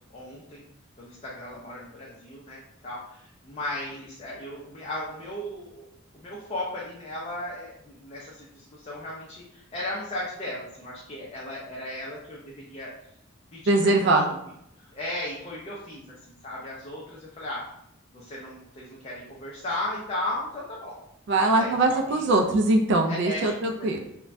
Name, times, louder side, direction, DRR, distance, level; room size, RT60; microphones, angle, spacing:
voice 1, 0.1-0.6 1.0-5.9 6.1-12.9 13.5-14.4 14.8-17.6 18.1-20.9 21.4-22.4 23.1-23.5, left 1 dB, 30° left, -6 dB, 0.4 m, -36 dB
voice 2, 13.7-14.3 21.3-24.0, right 2 dB, 55° right, 3 dB, 0.3 m, -22 dB
2.5 x 2.1 x 3.2 m, 0.78 s
head